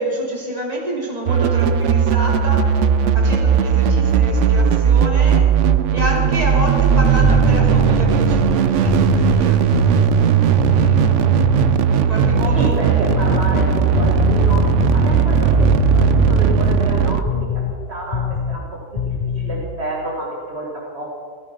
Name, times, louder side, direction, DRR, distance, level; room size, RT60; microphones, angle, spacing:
voice 1, 0.0-2.7 3.1-5.5 5.9-8.5 8.8-10.0 10.7-11.6 11.9-13.2, equal, 30° right, -2 dB, 3.1 m, -28 dB
sound 1, 1.3-17.2, right 8 dB, 75° right, 1.0 m, -16 dB
sound 2, 7.2-11.9 12.2-12.8 13.1-17.8 18.1-18.7 19.0-19.6, left 6 dB, 40° left, 0.5 m, -23 dB
voice 2, 12.5-17.6 17.9-18.6 18.9-21.2, right 1 dB, 60° right, -3 dB, 2.3 m, -29 dB
15.0 x 14.0 x 5.5 m, 2.1 s
omnidirectional pair, 1.3 m